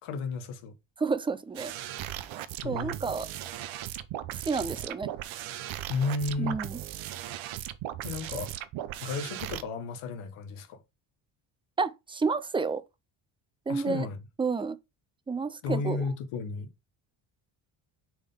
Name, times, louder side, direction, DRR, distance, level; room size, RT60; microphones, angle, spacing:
voice 1, 0.0-0.7 2.6-3.0 5.9-6.6 8.0-8.5 9.0-10.8 13.7-14.2 15.6-16.7, left 4 dB, 85° left, 1.3 m, -33 dB
voice 2, 1.0-1.7 2.6-3.3 4.5-5.1 6.4-6.8 11.8-12.8 13.7-14.1 14.4-14.8 15.3-16.0, right 4 dB, 10° right, 0.4 m, -30 dB
sound 1, 1.5-9.6, right 12 dB, 70° right, 0.7 m, -37 dB
4.7 x 3.8 x 5.3 m
cardioid pair, 95°, 49 cm